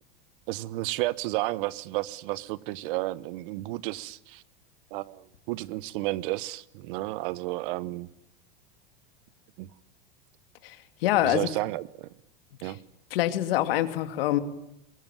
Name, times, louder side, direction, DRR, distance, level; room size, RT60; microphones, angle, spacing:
voice 1, 0.5-4.4 4.9-8.1 9.6-9.7 11.2-12.1 12.6-12.8, right 19 dB, 60° right, 1.1 m, -32 dB
voice 2, 11.0-11.5 12.6-12.7 13.1-14.4, left 14 dB, 75° left, 2.5 m, -25 dB
23.0 x 22.0 x 9.1 m
supercardioid pair, 125°, 29 cm